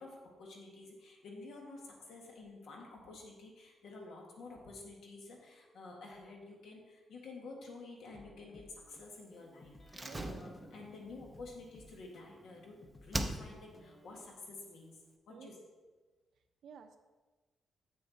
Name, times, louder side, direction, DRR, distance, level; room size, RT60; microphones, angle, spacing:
voice 1, 0.0-15.0 15.3-15.6, left 3 dB, 75° left, 0 dB, 1.8 m, -50 dB
sound 1, 8.1-14.2, left 2 dB, 30° left, 0.8 m, -59 dB
Slam, 9.9-12.6 13.1-13.9 14.1-14.2, right 1 dB, 10° right, 0.6 m, -41 dB
voice 2, 10.1-10.4 15.3-15.5 16.6-17.0, right 7 dB, 70° right, 7 dB, 0.7 m, -52 dB
8.1 x 6.6 x 4.2 m, 1.3 s
wide cardioid pair, 160°, 0 cm